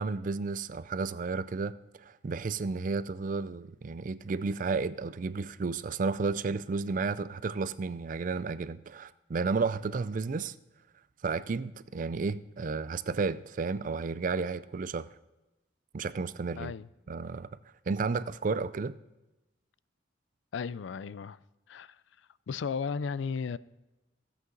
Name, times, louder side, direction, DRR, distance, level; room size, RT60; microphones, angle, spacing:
voice 1, 0.0-10.5 11.2-15.1 15.9-16.7 17.1-17.5 17.9-19.0, right 4 dB, 45° right, 0.4 m, -32 dB
voice 2, 16.6-16.9 20.5-21.4 21.7-22.0 22.5-23.6, left 5 dB, 75° left, 0.4 m, -34 dB
15.5 x 8.3 x 3.9 m
head